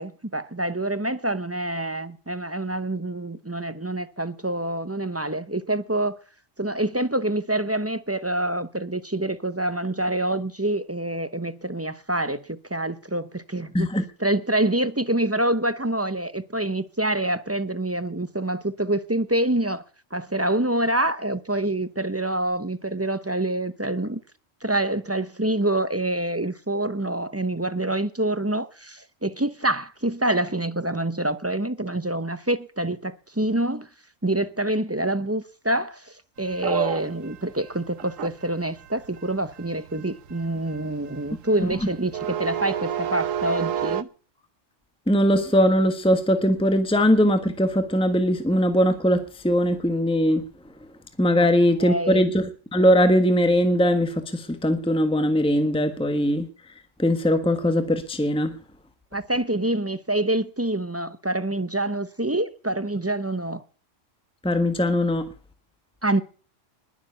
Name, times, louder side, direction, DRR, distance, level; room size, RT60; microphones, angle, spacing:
voice 1, 0.0-6.2 6.6-13.9 14.2-19.8 20.1-24.2 24.6-33.9 34.2-44.1 51.4-51.5 51.8-52.2 59.1-63.6 66.0-66.2, right 1 dB, 15° right, 0.7 m, -26 dB
sound 1, 36.5-44.0, right 10 dB, 85° right, 1.3 m, -30 dB
voice 2, 45.1-50.7 51.2-56.7 57.0-58.6 64.4-65.3, equal, 5° left, 1.4 m, -21 dB
21.0 x 7.2 x 6.9 m
omnidirectional pair, 1.3 m